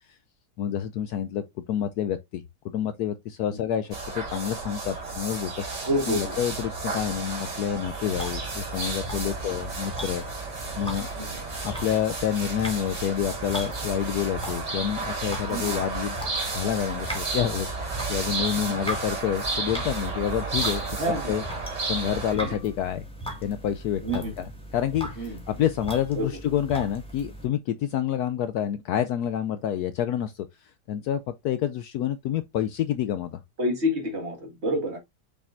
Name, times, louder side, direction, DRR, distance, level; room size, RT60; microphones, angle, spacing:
voice 1, 0.6-10.3 10.5-11.1 11.6-16.2 16.5-21.4 21.9-23.1 23.4-33.4, left 10 dB, 70° left, 1.0 m, -28 dB
sound 1, 3.9-22.3, right 3 dB, 80° right, 3.6 m, -32 dB
voice 2, 5.9-6.4 11.2-11.4 15.5-15.7 21.0-21.3 22.4-22.5 24.0-24.3 25.2-25.3 26.2-26.3 33.6-35.0, equal, 40° right, 2.1 m, -28 dB
sound 2, 8.0-27.5, equal, 5° left, 1.8 m, -39 dB
6.4 x 5.9 x 2.5 m
omnidirectional pair, 1.9 m